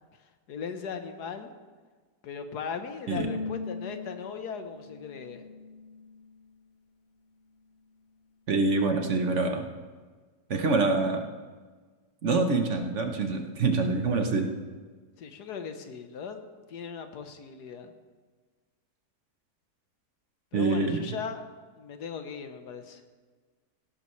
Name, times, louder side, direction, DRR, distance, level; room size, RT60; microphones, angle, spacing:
voice 1, 0.5-1.5 2.2-5.5 15.2-17.9 20.5-21.5 21.8-23.0, left 6 dB, 80° left, 7 dB, 1.6 m, -38 dB
Bowed string instrument, 3.2-6.4, left 3 dB, 50° left, 1.0 m, -39 dB
voice 2, 8.5-9.7 10.5-11.2 12.2-14.5 20.5-21.0, right 3 dB, 50° right, 5 dB, 1.2 m, -25 dB
17.0 x 12.5 x 3.2 m, 1.4 s
omnidirectional pair, 1.7 m